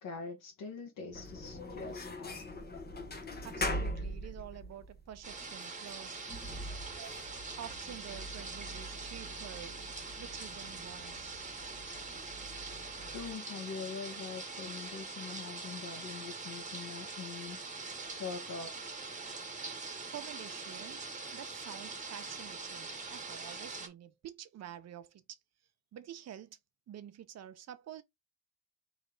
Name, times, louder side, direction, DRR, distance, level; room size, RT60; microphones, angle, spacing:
voice 1, 0.0-2.6 13.1-17.8 18.1-18.7, left 5 dB, 85° left, 1.6 m, -44 dB
sound 1, 1.1-13.3, left 1 dB, 30° left, 1.2 m, -43 dB
voice 2, 3.4-6.3 6.8-7.2 7.6-9.8 10.1-11.7 20.1-21.0 21.3-25.2 25.9-26.6 26.9-28.0, right 10 dB, 60° right, 0.8 m, -48 dB
sound 2, 5.2-23.9, right 4 dB, 25° right, 1.2 m, -43 dB
4.0 x 3.1 x 3.9 m
cardioid pair, 90°, 30 cm